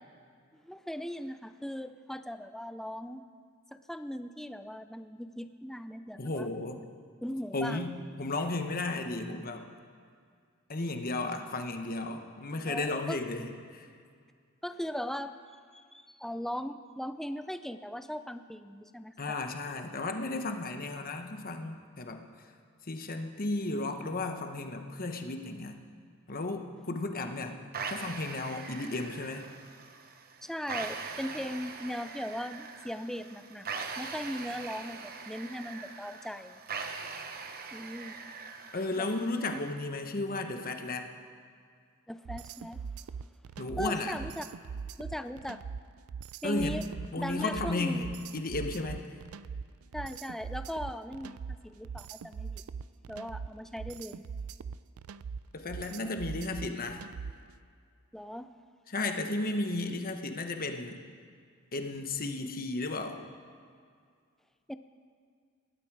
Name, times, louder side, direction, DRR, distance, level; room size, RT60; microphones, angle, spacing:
voice 1, 0.6-3.2 3.7-6.5 7.2-7.8 12.7-13.2 14.6-15.3 15.7-19.4 30.4-33.7 34.0-36.6 37.7-38.1 39.0-39.2 39.5-39.6 42.1-42.8 43.8-44.4 45.0-45.6 46.4-46.9 47.2-48.1 49.9-52.6 53.1-54.2 58.1-58.5 64.7-64.8, equal, ahead, 10 dB, 0.5 m, -38 dB
voice 2, 6.1-6.8 7.5-9.7 10.7-13.9 19.2-22.2 22.9-25.8 26.3-27.6 27.9-29.5 38.7-41.0 43.6-44.2 46.4-46.8 47.1-49.0 55.5-57.0 58.9-61.0 61.7-63.2, left 2 dB, 45° left, 5 dB, 1.1 m, -34 dB
sound 1, 27.7-39.7, right 5 dB, 45° right, 1.0 m, -42 dB
sound 2, 42.2-57.5, right 6 dB, 85° right, 0.4 m, -41 dB
19.5 x 12.5 x 4.8 m, 2.2 s
head